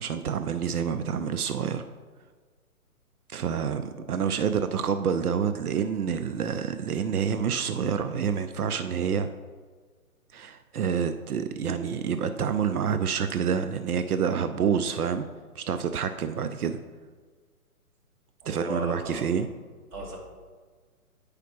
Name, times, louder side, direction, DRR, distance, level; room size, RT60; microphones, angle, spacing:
voice 1, 0.0-1.8 3.3-9.3 10.3-15.3 15.6-16.8 18.5-19.5, right 7 dB, 75° right, 9 dB, 0.6 m, -28 dB
voice 2, 18.4-19.2 19.9-20.2, equal, 20° right, -1 dB, 1.2 m, -36 dB
9.4 x 4.9 x 3.0 m, 1.5 s
figure-of-eight pair, 130°, 44 cm